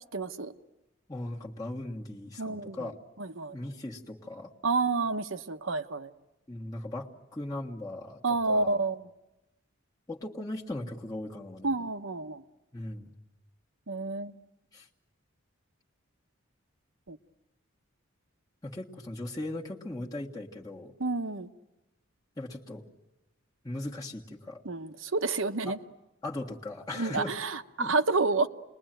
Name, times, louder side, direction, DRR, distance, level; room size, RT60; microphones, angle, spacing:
voice 1, 0.1-0.5 2.4-2.9 3.2-3.5 4.6-6.1 8.2-9.1 11.6-12.4 13.9-14.3 17.1-17.2 21.0-21.5 24.6-25.8 26.9-28.5, right 3 dB, 70° right, 9 dB, 1.1 m, -29 dB
voice 2, 1.1-2.9 3.5-4.5 6.5-8.2 8.5-8.7 10.1-11.8 12.7-13.1 14.7-14.9 18.6-20.9 22.4-22.8 23.6-24.6 25.6-25.8 26.2-27.4 27.8-27.9, left 1 dB, 15° left, -3 dB, 1.6 m, -38 dB
29.0 x 21.5 x 9.1 m, 1.0 s
head